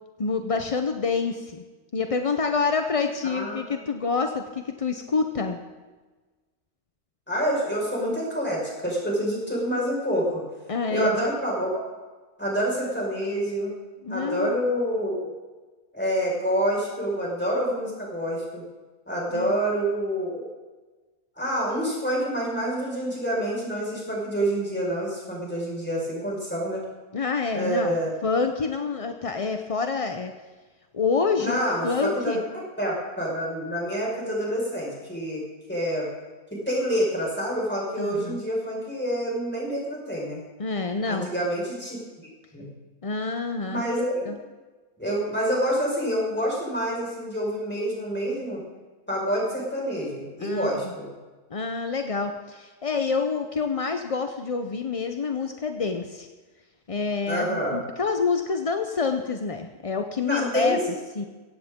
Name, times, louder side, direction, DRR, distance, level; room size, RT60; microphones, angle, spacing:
voice 1, 0.2-1.6 1.9-5.6 10.7-11.1 14.0-14.6 19.3-19.5 27.1-28.0 28.2-30.3 30.9-32.4 38.0-38.4 40.6-41.3 43.0-43.8 44.3-44.4 50.4-50.9 51.5-56.3 56.9-60.8 61.2-61.3, left 4 dB, 40° left, 5 dB, 0.5 m, -27 dB
voice 2, 3.2-3.7 7.3-10.4 10.9-11.8 12.4-13.7 14.1-15.3 15.9-18.6 19.1-20.4 21.4-26.8 27.5-28.1 31.4-32.4 32.8-35.4 35.7-36.1 36.5-40.4 41.1-42.0 42.5-42.7 43.7-44.2 45.0-48.6 49.1-51.1 57.2-57.8 60.2-60.8, equal, 5° left, -4 dB, 5.2 m, -27 dB
16.0 x 15.5 x 3.7 m, 1.3 s
omnidirectional pair, 1.6 m